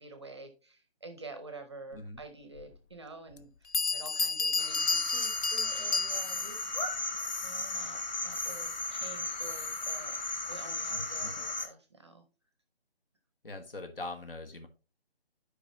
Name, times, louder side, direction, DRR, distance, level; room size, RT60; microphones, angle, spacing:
voice 1, 0.0-6.9 7.4-10.2 10.5-12.2, right 2 dB, 25° right, 8 dB, 0.7 m, -48 dB
voice 2, 1.9-2.2 10.9-11.5 13.4-14.7, left 2 dB, 60° left, 7 dB, 1.5 m, -42 dB
Bell, 2.6-2.7 3.4-3.5 3.7-6.6, left 4 dB, 85° left, 0.6 m, -31 dB
sound 1, 4.6-11.7, left 2 dB, 40° left, 1.0 m, -35 dB
10.5 x 5.1 x 2.9 m, 0.34 s
figure-of-eight pair, 155°, 32 cm